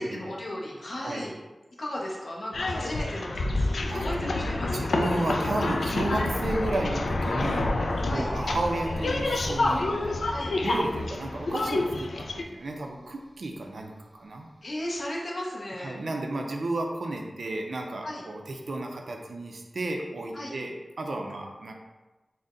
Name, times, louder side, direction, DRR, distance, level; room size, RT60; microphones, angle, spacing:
voice 1, 0.0-1.3 1.8-5.0 8.0-8.3 10.3-10.5 14.6-16.0 18.0-18.2 20.3-20.5, left 1 dB, 65° left, -3 dB, 0.8 m, -35 dB
sound 1, 2.5-12.4, left 2 dB, 90° left, 0.3 m, -28 dB
voice 2, 4.7-7.7 8.1-10.0 10.6-14.5 15.8-21.7, right 2 dB, 80° right, 2 dB, 0.5 m, -32 dB
sound 2, 6.2-13.1 13.4-13.5, equal, 5° left, 0.6 m, -41 dB
3.9 x 2.1 x 3.7 m, 1.1 s
wide cardioid pair, 80°, 0 cm